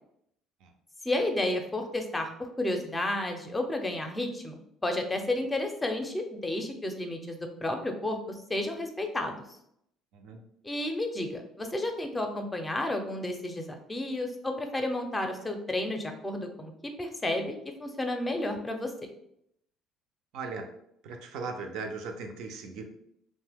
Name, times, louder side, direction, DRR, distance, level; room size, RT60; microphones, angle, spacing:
voice 1, 1.0-8.2 8.5-9.6 10.6-16.7 17.0-17.5 17.8-18.9, left 1 dB, 15° left, 4 dB, 0.5 m, -31 dB
voice 2, 20.3-20.7 21.0-22.8, right 4 dB, 75° right, 5 dB, 0.5 m, -38 dB
2.8 x 2.1 x 3.4 m, 0.75 s
supercardioid pair, 95°, 0 cm